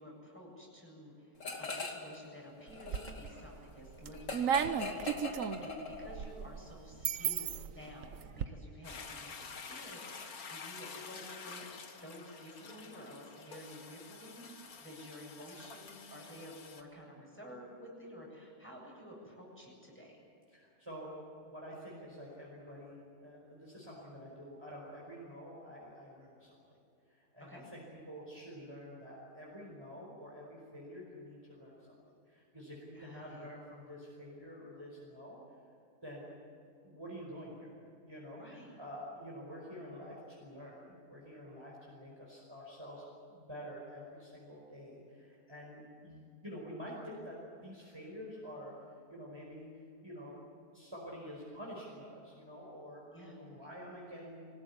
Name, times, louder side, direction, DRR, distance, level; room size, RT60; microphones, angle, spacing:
voice 1, 0.0-11.7 11.9-14.5 14.8-20.2 27.4-27.6 32.9-33.5 38.4-38.8 53.1-53.4, equal, 10° left, -3 dB, 7.7 m, -51 dB
sound 1, 1.4-2.2 2.5-6.3, left 3 dB, 55° left, 2.8 m, -42 dB
sound 2, 2.7-3.4 3.8-8.5, right 8 dB, 65° right, 1.3 m, -35 dB
Toilet flush, 8.8-16.8, left 5 dB, 75° left, 2.0 m, -49 dB
voice 2, 20.5-21.1 21.4-26.8 27.1-35.4 36.0-36.3 36.8-37.7 38.1-48.7 49.1-49.7 50.0-50.3 50.7-54.5, equal, 15° right, -4 dB, 5.1 m, -48 dB
25.0 x 19.0 x 9.9 m, 2.5 s
omnidirectional pair, 1.5 m